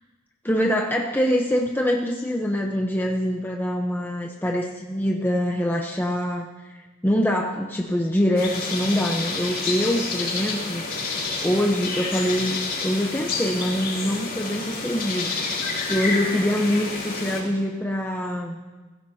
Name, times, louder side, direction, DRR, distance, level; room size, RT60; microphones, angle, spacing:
voice 1, 0.4-10.9 11.4-15.6 15.9-18.6, equal, 10° left, 0 dB, 0.9 m, -24 dB
sound 1, 8.4-17.4, left 3 dB, 50° left, 4.7 m, -29 dB
21.5 x 15.5 x 2.8 m, 1.3 s
head